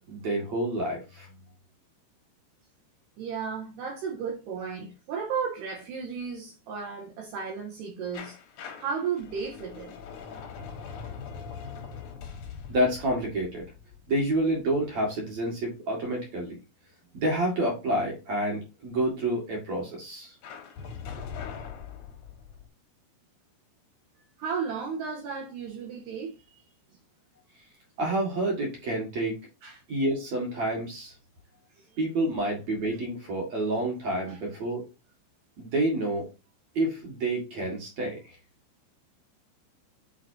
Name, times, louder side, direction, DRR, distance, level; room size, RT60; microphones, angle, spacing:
voice 1, 0.1-1.3 12.7-13.6 14.1-16.6 17.1-20.4 28.0-29.4 29.9-31.1 32.0-34.8 35.6-36.3 36.8-38.4, right 1 dB, 60° right, 1.8 m, -28 dB
voice 2, 3.2-8.4 8.8-9.9 24.4-26.6 29.6-29.8 34.2-34.4, right 6 dB, 75° right, 2.5 m, -34 dB
sound 1, 8.1-14.9 20.4-22.7, left 6 dB, 80° left, 1.7 m, -42 dB
9.4 x 4.1 x 2.7 m
omnidirectional pair, 5.7 m